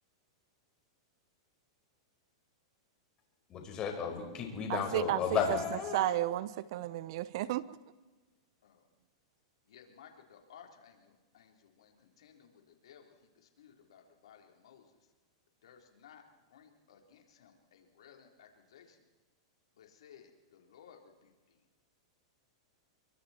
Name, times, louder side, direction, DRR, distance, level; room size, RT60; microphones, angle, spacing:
voice 1, 3.5-6.1, left 6 dB, 30° left, 5.0 m, -34 dB
voice 2, 4.7-5.2 5.9-7.6, right 14 dB, 55° right, 0.8 m, -32 dB
voice 3, 9.7-15.0 15.6-16.2 16.5-19.0 19.7-21.6, left 8 dB, 80° left, 3.9 m, -59 dB
29.0 x 23.5 x 4.5 m
hypercardioid pair, 140°, 3 cm